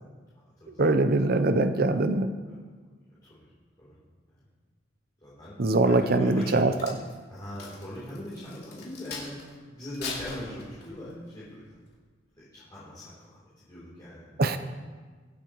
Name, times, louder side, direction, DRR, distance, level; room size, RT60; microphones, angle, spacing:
voice 1, 0.8-2.3 5.6-7.0 14.4-14.6, right 2 dB, 55° right, 10 dB, 0.7 m, -23 dB
voice 2, 5.2-6.7 7.3-9.3 9.7-11.6 12.4-14.4, equal, 25° left, -10 dB, 3.3 m, -40 dB
Crack, 6.4-9.5 9.9-11.1 11.6-11.9, left 4 dB, 60° left, 3.1 m, -40 dB
23.0 x 8.5 x 3.1 m, 1.5 s
head